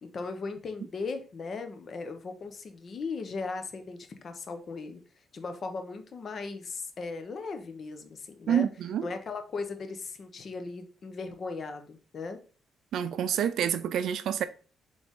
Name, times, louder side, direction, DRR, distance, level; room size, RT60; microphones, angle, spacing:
voice 1, 0.0-5.0 5.3-8.7 9.0-12.4, left 4 dB, 50° left, 0.8 m, -37 dB
voice 2, 8.5-9.1 12.9-14.4, right 9 dB, 75° right, 0.4 m, -28 dB
3.9 x 3.3 x 3.6 m
cardioid pair, 90°, 0 cm